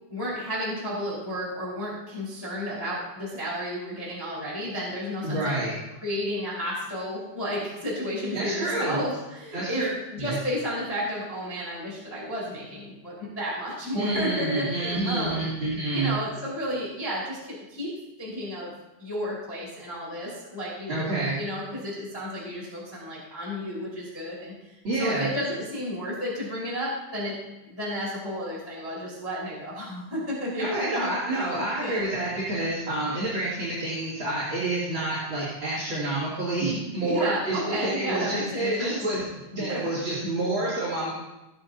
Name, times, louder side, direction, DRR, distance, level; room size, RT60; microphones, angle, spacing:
voice 1, 0.1-5.7 6.0-15.5 15.9-17.9 18.2-18.7 19.0-27.4 27.6-32.0 37.0-39.2 39.7-39.9, equal, 5° left, -6 dB, 3.6 m, -32 dB
voice 2, 5.2-5.7 8.3-9.0 9.5-9.9 10.2-10.3 13.9-16.1 20.9-21.4 24.8-25.3 30.6-41.1, right 2 dB, 30° right, -10 dB, 2.8 m, -28 dB
20.0 x 8.5 x 2.8 m, 1.0 s
omnidirectional pair, 5.5 m